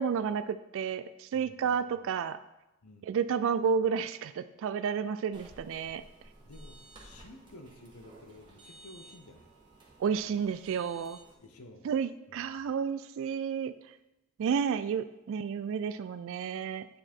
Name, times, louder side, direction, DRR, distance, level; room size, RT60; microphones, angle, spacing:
voice 1, 0.0-2.4 3.0-6.0 10.0-11.2 11.8-13.8 14.4-16.9, right 6 dB, 60° right, 12 dB, 0.3 m, -31 dB
voice 2, 1.3-2.1 2.8-3.2 6.4-9.5 11.4-11.9 12.3-12.6, left 1 dB, 85° left, 6 dB, 0.9 m, -53 dB
sound 1, 5.3-11.3, right 2 dB, 20° right, 1.5 m, -54 dB
8.5 x 4.9 x 4.4 m, 0.95 s
head